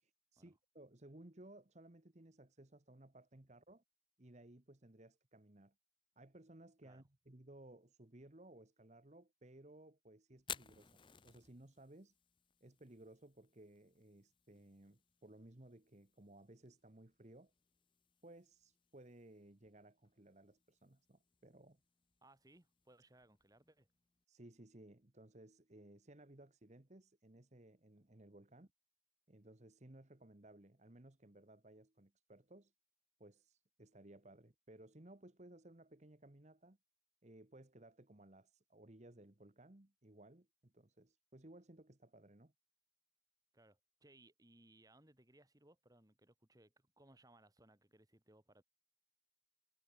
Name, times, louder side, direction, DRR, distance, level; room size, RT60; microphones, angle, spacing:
voice 1, 0.0-3.8 4.2-5.7 6.2-12.1 12.6-17.5 18.2-21.8 24.3-28.7 29.3-32.7 33.2-36.8 37.2-42.5, right 1 dB, 35° right, 1.3 m, -60 dB
Fire, 10.4-24.2, left 8 dB, 25° left, 0.7 m, -58 dB
voice 2, 22.2-23.9 43.5-48.6, right 1 dB, 20° right, 2.3 m, -66 dB
head